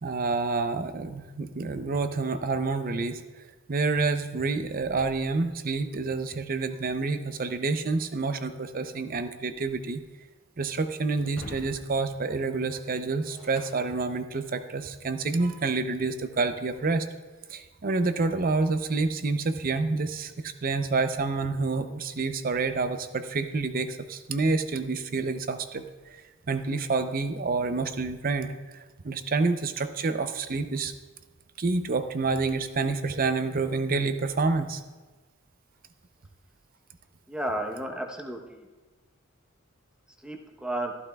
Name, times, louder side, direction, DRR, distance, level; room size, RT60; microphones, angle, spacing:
voice 1, 0.0-10.0 10.6-17.1 17.5-30.9 31.6-34.8, right 3 dB, 45° right, 9 dB, 0.6 m, -28 dB
Shatter, 11.2-14.7, equal, 75° left, 1.8 m, -47 dB
voice 2, 37.3-38.7 40.2-40.9, right 1 dB, 5° right, 2 dB, 0.9 m, -33 dB
14.0 x 12.0 x 2.3 m, 1.3 s
head